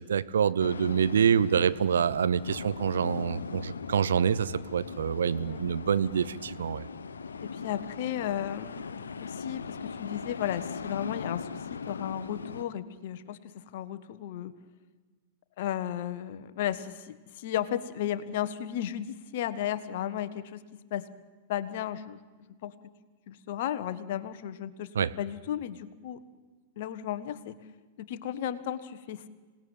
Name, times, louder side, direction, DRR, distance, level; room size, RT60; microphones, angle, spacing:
voice 1, 0.0-6.8 25.0-25.1, right 7 dB, 70° right, 16 dB, 0.8 m, -26 dB
sound 1, 0.6-12.7, left 5 dB, 75° left, 1.0 m, -39 dB
voice 2, 7.4-14.5 15.6-20.6 20.9-21.1 21.5-22.2 22.6-22.7 23.3-26.2 26.8-27.6 28.0-29.3, left 11 dB, 55° left, 13 dB, 1.4 m, -34 dB
26.5 x 18.5 x 9.2 m, 1.4 s
figure-of-eight pair, 100°, 0 cm